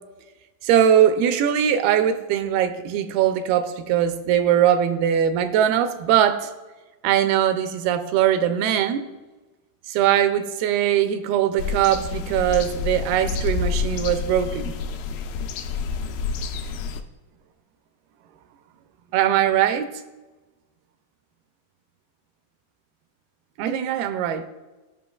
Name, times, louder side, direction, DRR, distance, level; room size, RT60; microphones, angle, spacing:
voice 1, 0.6-6.5 7.0-9.0 9.9-14.7 19.1-20.0 23.6-24.5, right 10 dB, 85° right, 2.5 m, -21 dB
sound 1, 11.6-17.0, left 5 dB, 80° left, 2.2 m, -28 dB
16.5 x 5.6 x 2.3 m
omnidirectional pair, 4.4 m